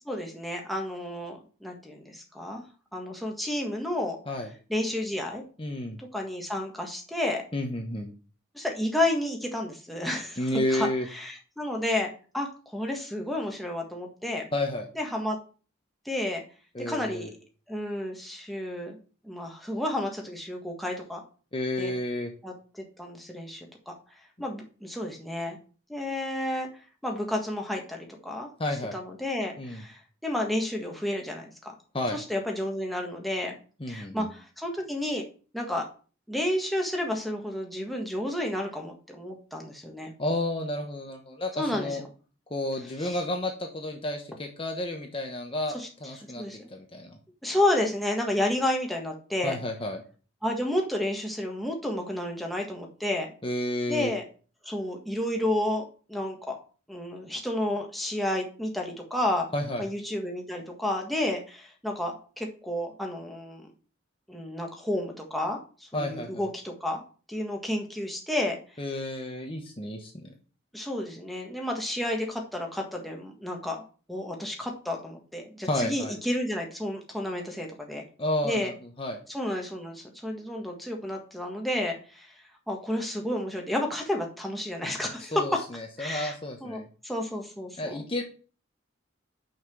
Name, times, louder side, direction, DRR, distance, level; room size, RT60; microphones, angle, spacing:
voice 1, 0.0-2.6 2.9-4.2 4.7-5.4 6.0-7.4 8.5-14.5 15.0-15.4 16.0-16.4 16.8-17.3 17.7-19.0 19.2-21.2 21.8-21.9 22.4-23.9 24.4-25.6 25.9-26.7 27.0-28.5 28.9-31.4 32.1-33.6 33.9-35.2 35.5-35.8 36.3-40.1 41.6-42.0 43.0-43.2 45.7-45.9 46.4-46.7 47.4-49.6 50.4-53.3 53.9-54.2 54.6-56.6 56.9-59.5 59.8-63.7 64.3-67.0 67.3-68.6 70.7-73.8 74.1-78.0 78.4-78.7 79.3-82.3 82.7-85.6 86.0-88.0, left 1 dB, ahead, 0 dB, 1.6 m, -31 dB
voice 2, 5.6-6.0 7.5-8.1 10.4-11.1 14.5-14.9 16.7-17.3 21.5-22.3 28.6-29.0 29.6-29.8 31.9-32.2 33.8-34.3 40.2-42.0 42.5-46.4 46.7-47.2 49.4-50.0 53.4-54.1 59.5-59.9 65.9-66.4 68.8-70.2 75.6-76.2 78.2-79.2 85.2-86.9 87.8-88.2, left 1 dB, 25° left, 2 dB, 1.1 m, -31 dB
6.2 x 5.8 x 7.1 m, 0.38 s
head